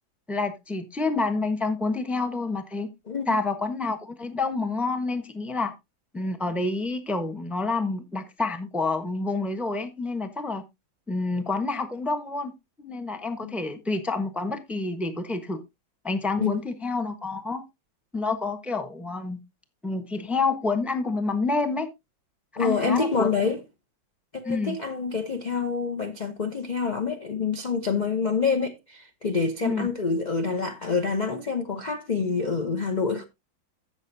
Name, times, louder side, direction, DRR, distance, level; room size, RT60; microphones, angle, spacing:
voice 1, 0.3-2.9 3.3-5.7 6.1-10.6 11.1-12.5 12.8-15.6 16.0-17.6 18.1-19.4 19.8-21.9 22.6-23.3 24.4-24.8 29.6-29.9, left 3 dB, ahead, 0.7 m, -28 dB
voice 2, 22.6-23.6 24.3-33.2, left 5 dB, 45° left, 0.5 m, -27 dB
15.5 x 6.4 x 2.7 m
omnidirectional pair, 2.2 m